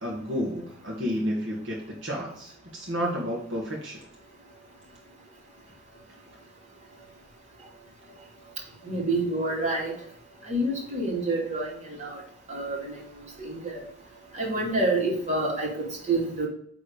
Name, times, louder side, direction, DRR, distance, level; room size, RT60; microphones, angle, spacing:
voice 1, 0.0-4.0, equal, 65° right, -2 dB, 1.7 m, -31 dB
voice 2, 8.8-10.0 10.4-12.2 12.5-13.1 13.4-13.8 14.3-16.5, right 2 dB, 35° right, -3 dB, 2.5 m, -28 dB
9.0 x 3.7 x 5.0 m, 0.64 s
head